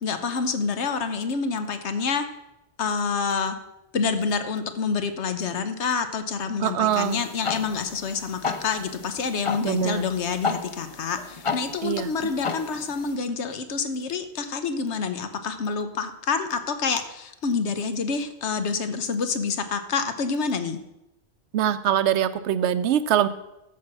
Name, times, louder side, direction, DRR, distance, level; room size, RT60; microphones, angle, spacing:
voice 1, 0.0-2.3 2.8-3.6 3.9-20.8, left 5 dB, 85° left, 9 dB, 1.2 m, -27 dB
voice 2, 6.6-7.2 9.6-10.1 11.8-12.3 21.5-23.3, right 10 dB, 90° right, 13 dB, 0.9 m, -23 dB
sound 1, 6.9-13.2, left 5 dB, 35° left, 0.6 m, -34 dB
13.0 x 4.7 x 6.0 m, 0.89 s
omnidirectional pair, 1.1 m